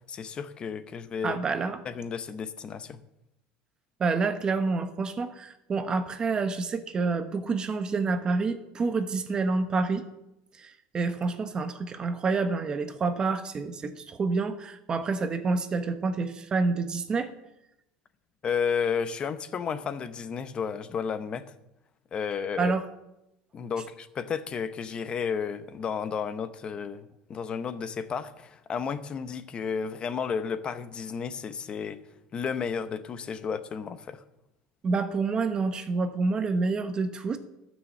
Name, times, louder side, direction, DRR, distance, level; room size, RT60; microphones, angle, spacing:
voice 1, 0.1-1.4 1.8-3.0 18.4-21.5 22.1-22.7 23.5-32.0 32.3-34.2, left 6 dB, 25° left, 13 dB, 0.7 m, -32 dB
voice 2, 1.2-1.8 4.0-10.0 10.6-17.3 22.6-22.8 34.8-37.4, right 4 dB, 20° right, 9 dB, 0.9 m, -28 dB
13.0 x 6.3 x 7.4 m, 0.88 s
cardioid pair, 155°, 4 cm